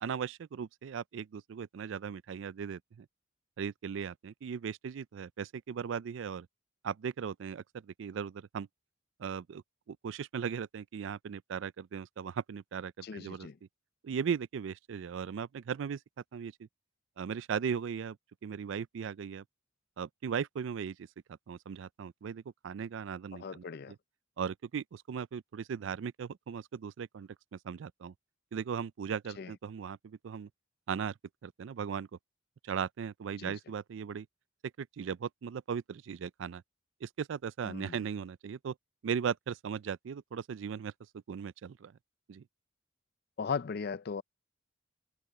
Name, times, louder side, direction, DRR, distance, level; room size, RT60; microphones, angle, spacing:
voice 1, 0.0-3.1 3.6-6.5 6.8-8.7 9.2-9.6 9.9-13.5 14.0-16.0 16.3-16.7 17.2-18.2 18.4-19.4 20.0-21.0 21.3-24.0 24.4-28.1 28.5-30.5 30.9-31.1 31.4-32.1 32.6-34.3 34.8-36.6 37.0-38.7 39.0-41.9 42.3-42.4, right 7 dB, 70° right, 0.4 m, -38 dB
voice 2, 13.0-13.5 23.4-23.9 29.4-29.5 33.4-33.5 37.7-37.9 43.4-44.2, left 5 dB, 50° left, 0.4 m, -37 dB
head